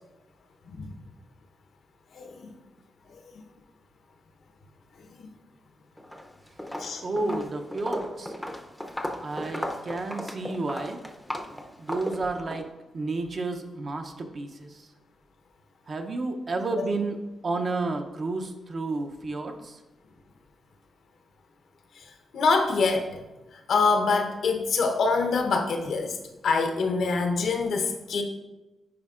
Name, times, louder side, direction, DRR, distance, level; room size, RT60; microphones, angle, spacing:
voice 1, 2.1-2.5 5.2-5.3 6.8-7.4 22.0-22.1 22.3-23.1 23.7-26.2 26.4-28.2, left 4 dB, 75° left, 3 dB, 0.8 m, -25 dB
Walk footsteps, 6.0-6.3 6.6-12.6, equal, 5° left, 0.6 m, -35 dB
voice 2, 7.0-8.4 9.2-11.0 11.8-12.7 12.9-14.9 15.9-17.2 17.4-19.8, right 3 dB, 45° right, 4 dB, 0.6 m, -31 dB
9.5 x 4.6 x 2.4 m, 1.1 s
cardioid pair, 120°, 0 cm